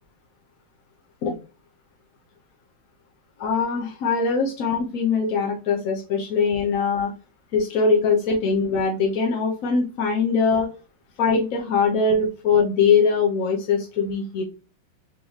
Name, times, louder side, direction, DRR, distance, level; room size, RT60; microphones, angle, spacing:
voice 1, 3.4-7.1 7.5-10.7 11.2-14.4, left 5 dB, 60° left, -1 dB, 0.9 m, -22 dB
3.9 x 3.6 x 3.1 m, 0.34 s
omnidirectional pair, 2.1 m